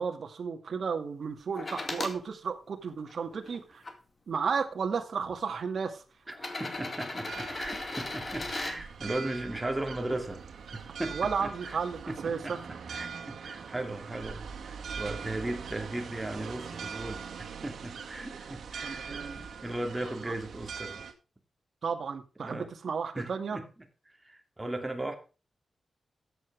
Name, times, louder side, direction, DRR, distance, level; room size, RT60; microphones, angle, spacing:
voice 1, 0.0-3.8 4.3-6.0 11.1-12.6 18.8-19.4 20.2-20.3 21.8-23.6, right 5 dB, 60° right, 5 dB, 2.2 m, -33 dB
sound 1, 1.6-2.2 2.9-3.9 4.9-5.0 6.3-8.8 10.6-10.7, left 2 dB, 35° left, 2.4 m, -37 dB
voice 2, 6.3-10.4 10.7-11.8 12.1-12.5 12.9-21.0 22.4-22.7 23.2-23.7 24.2-25.1, right 1 dB, 10° right, 4 dB, 2.6 m, -37 dB
sound 2, 7.3-21.1, right 6 dB, 80° right, 2.1 m, -42 dB
14.0 x 8.2 x 3.5 m, 0.33 s
wide cardioid pair, 130°, 0 cm